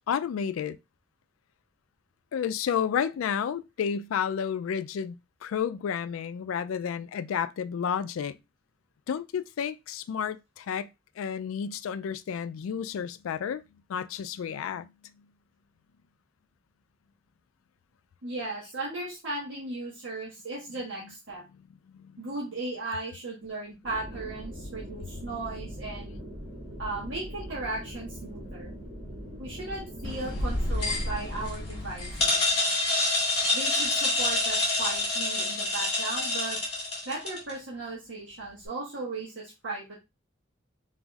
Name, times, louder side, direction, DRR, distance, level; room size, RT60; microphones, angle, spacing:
voice 1, 0.1-0.8 2.3-5.1 5.4-8.3 9.1-10.9 11.2-13.6 13.9-14.9 21.9-22.2, left 7 dB, 90° left, 0.3 m, -31 dB
voice 2, 18.2-21.4 22.2-26.1 26.8-28.7 29.4-32.4 33.5-36.6 37.0-39.9, right 2 dB, 70° right, 1.3 m, -36 dB
sound 1, 23.8-31.5, equal, 30° right, 2.5 m, -41 dB
sound 2, 30.0-37.5, left 2 dB, 30° left, 1.9 m, -27 dB
4.0 x 3.9 x 2.3 m
head